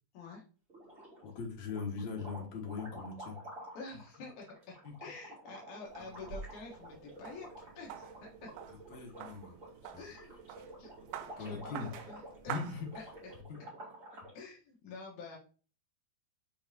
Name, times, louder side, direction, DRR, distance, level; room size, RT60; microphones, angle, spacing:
sound 1, 0.7-1.3 1.6-14.4, right 1 dB, 20° right, 2.6 m, -51 dB
voice 1, 1.2-3.4 4.8-4.9 8.9-9.5 9.8-10.0 11.4-11.9 12.5-12.9, left 5 dB, 60° left, 0 dB, 2.0 m, -40 dB
voice 2, 3.7-7.5 7.7-8.5 10.0-10.3 10.8-10.9 11.4-12.2 12.4-12.6 12.9-13.0 13.6-13.7 14.3-15.4, left 4 dB, 85° left, -2 dB, 1.7 m, -48 dB
sound 2, 5.9-13.4, right 9 dB, 85° right, 3.0 m, -48 dB
7.1 x 4.9 x 2.7 m, 0.37 s
omnidirectional pair, 5.5 m